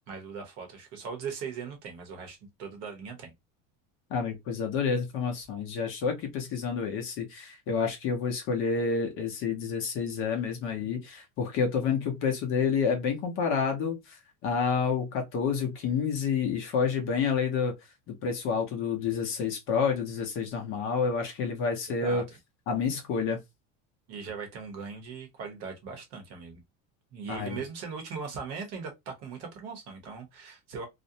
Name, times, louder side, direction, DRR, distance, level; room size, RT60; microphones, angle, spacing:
voice 1, 0.1-3.3 22.0-22.2 24.1-26.6 27.1-30.9, right 5 dB, 45° right, 0.9 m, -39 dB
voice 2, 4.1-17.7 18.1-22.2 22.7-23.4 27.3-27.6, left 5 dB, 35° left, 0.7 m, -29 dB
2.5 x 2.0 x 2.6 m
cardioid pair, 170°, 35 cm